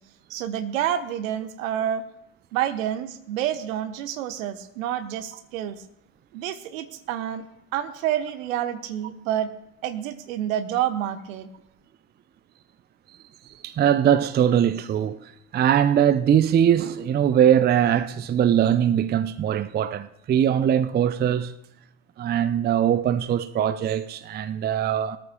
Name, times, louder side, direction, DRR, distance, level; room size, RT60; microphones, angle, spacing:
voice 1, 0.3-2.1 2.5-5.8 6.3-7.5 7.7-9.5 9.8-11.5, right 10 dB, 65° right, 1.2 m, -28 dB
voice 2, 13.4-21.5 22.2-25.2, right 9 dB, 25° right, 0.6 m, -21 dB
20.5 x 14.0 x 2.3 m
figure-of-eight pair, 60°, 44 cm